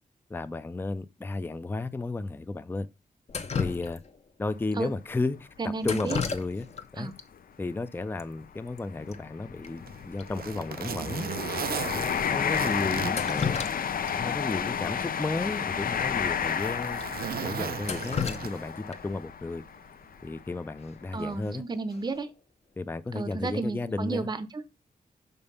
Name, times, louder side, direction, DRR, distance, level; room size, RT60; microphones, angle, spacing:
voice 1, 0.3-2.9 3.5-4.0 4.4-6.7 6.9-7.1 7.6-11.3 11.8-13.6 14.2-17.0 17.3-19.6 20.2-21.6 22.8-24.3, left 3 dB, 15° left, 0.4 m, -33 dB
Drip, 3.3-4.3 5.8-6.9 7.2-7.3 8.2-8.3 8.5-8.8 9.1-9.2 9.6-9.7 10.2-10.3 10.8-10.9 11.6-11.8 12.9-14.1 14.5-14.6 15.9-16.0 16.4-16.5 17.0-17.1 17.6-19.2 21.2-21.5 21.9-22.3, left 6 dB, 45° left, 0.8 m, -34 dB
sound 1, 4.4-4.6 5.2-5.3 6.4-6.6 6.8-7.0 7.7-20.4 21.0-21.2, left 7 dB, 75° left, 0.6 m, -32 dB
voice 2, 5.6-6.2 7.0-7.2 21.1-22.3 23.1-24.7, right 3 dB, 30° right, 0.7 m, -32 dB
Zipper (clothing), 9.7-14.1 14.5-14.6 15.4-18.9 20.0-20.2, right 8 dB, 90° right, 0.5 m, -37 dB
6.9 x 5.3 x 5.4 m
wide cardioid pair, 175°, 15 cm